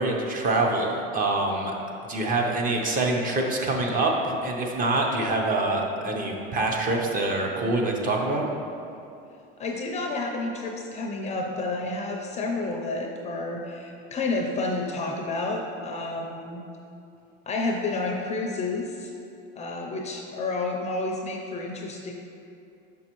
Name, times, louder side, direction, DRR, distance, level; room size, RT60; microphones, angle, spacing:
voice 1, 0.0-1.7 2.0-8.4, right 2 dB, 30° right, 1 dB, 0.6 m, -25 dB
voice 2, 9.6-16.6 17.5-19.1 19.6-22.1, left 2 dB, 25° left, 1 dB, 0.4 m, -30 dB
6.0 x 5.3 x 3.0 m, 2.6 s
supercardioid pair, 135°, 29 cm